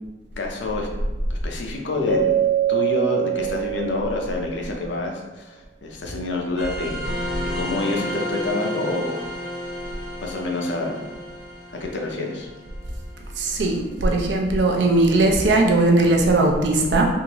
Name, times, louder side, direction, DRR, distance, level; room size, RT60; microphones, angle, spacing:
voice 1, 0.4-0.9 1.3-2.3 2.7-5.5 5.8-7.0 7.4-9.2 10.2-11.0 11.7-12.5, left 2 dB, 80° left, 0 dB, 0.6 m, -27 dB
Keyboard (musical), 2.1-4.5, right 10 dB, 10° left, 1.2 m, -23 dB
sound 1, 6.6-13.7, equal, 50° right, 1.4 m, -32 dB
voice 2, 13.4-17.1, right 2 dB, 70° right, 1 dB, 0.5 m, -19 dB
3.6 x 2.5 x 2.9 m, 1.2 s
head